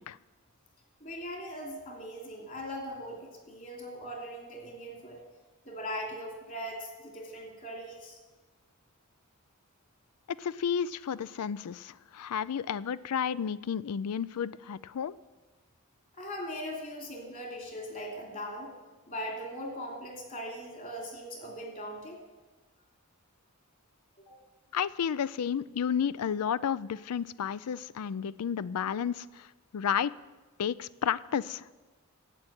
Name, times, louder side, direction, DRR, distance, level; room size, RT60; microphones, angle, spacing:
voice 1, 1.0-5.2 5.6-8.2 16.2-18.7 19.1-22.2 24.3-24.4, equal, 35° left, 2 dB, 2.9 m, -40 dB
voice 2, 10.3-15.2 24.7-29.5 29.7-30.1 30.6-31.6, left 8 dB, 85° left, 19 dB, 0.4 m, -32 dB
11.5 x 7.7 x 9.0 m, 1.2 s
head